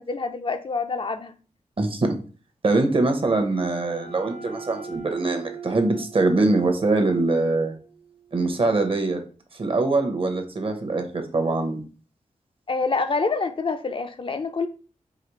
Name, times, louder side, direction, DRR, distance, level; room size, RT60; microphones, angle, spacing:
voice 1, 0.0-1.4 12.7-14.7, left 4 dB, 40° left, 8 dB, 0.4 m, -26 dB
voice 2, 1.8-2.2 2.6-7.7 8.3-9.2 9.5-11.8, right 2 dB, 45° right, 5 dB, 0.8 m, -23 dB
sound 1, 2.9-8.5, right 5 dB, 85° right, 0.8 m, -41 dB
4.9 x 2.7 x 3.0 m, 0.38 s
wide cardioid pair, 120°, 13 cm